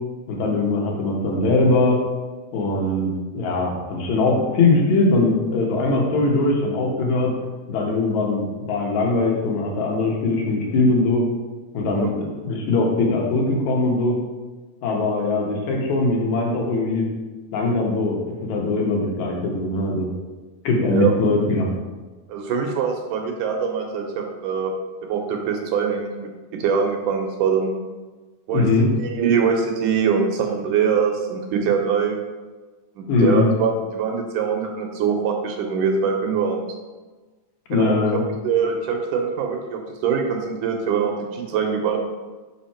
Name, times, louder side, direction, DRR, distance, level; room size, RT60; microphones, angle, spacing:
voice 1, 0.3-2.0 2.5-7.3 7.7-11.2 11.7-14.2 14.8-17.0 17.5-20.1 20.6-21.7 28.5-28.9 33.1-33.4 37.7-38.2, left 3 dB, 65° left, -1 dB, 2.5 m, -21 dB
voice 2, 22.3-24.7 25.0-26.1 26.6-27.7 28.5-28.7 29.0-32.2 33.0-36.6 37.7-42.0, right 6 dB, 75° right, 2 dB, 2.2 m, -23 dB
6.1 x 5.6 x 4.3 m, 1.3 s
omnidirectional pair, 3.8 m